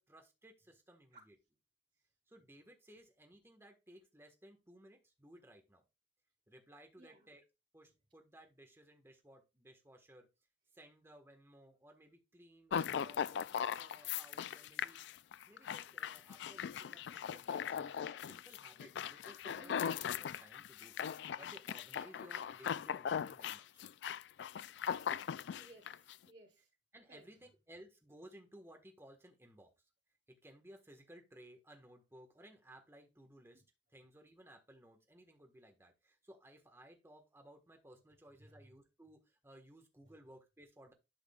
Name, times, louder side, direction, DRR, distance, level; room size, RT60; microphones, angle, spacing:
voice 1, 0.0-1.3 2.3-5.8 6.5-7.4 7.7-10.3 10.7-15.0 15.5-21.0 21.4-23.6 26.9-29.7 30.3-33.6 33.9-40.9, right 1 dB, 15° right, 1.5 m, -59 dB
voice 2, 7.0-7.3 15.8-16.0 19.6-20.0 25.5-26.7 27.1-27.2 33.5-33.6 38.4-38.7, right 1 dB, 50° right, 3.4 m, -60 dB
sound 1, 12.7-26.1, left 8 dB, 65° left, 0.3 m, -39 dB
12.0 x 5.0 x 2.4 m
head